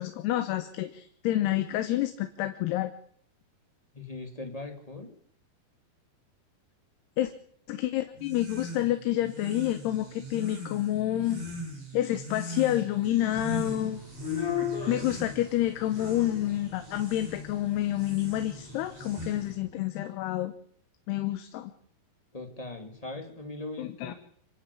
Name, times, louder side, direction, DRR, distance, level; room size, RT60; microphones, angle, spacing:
voice 1, 0.0-2.9 7.2-7.3 7.7-11.5 11.9-14.0 14.9-20.5 21.1-21.7 23.8-24.1, left 14 dB, 90° left, 9 dB, 3.1 m, -28 dB
voice 2, 3.9-5.2 22.3-24.1, left 2 dB, 10° left, 4 dB, 1.9 m, -40 dB
sound 1, 8.1-19.7, right 1 dB, 45° right, 8.1 m, -41 dB
sound 2, 13.5-19.5, left 9 dB, 35° left, 4.5 m, -38 dB
26.5 x 11.5 x 8.5 m, 0.63 s
omnidirectional pair, 4.6 m